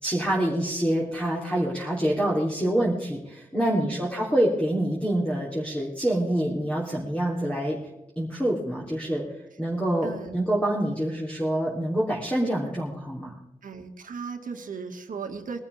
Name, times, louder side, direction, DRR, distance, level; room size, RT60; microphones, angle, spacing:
voice 1, 0.0-7.8 8.2-9.2 9.6-13.3, right 1 dB, 10° left, -4 dB, 3.2 m, -26 dB
voice 2, 3.7-4.1 10.0-10.5 13.6-15.6, right 5 dB, 70° right, 5 dB, 1.9 m, -37 dB
22.0 x 12.5 x 3.5 m, 0.94 s
wide cardioid pair, 135°, 14 cm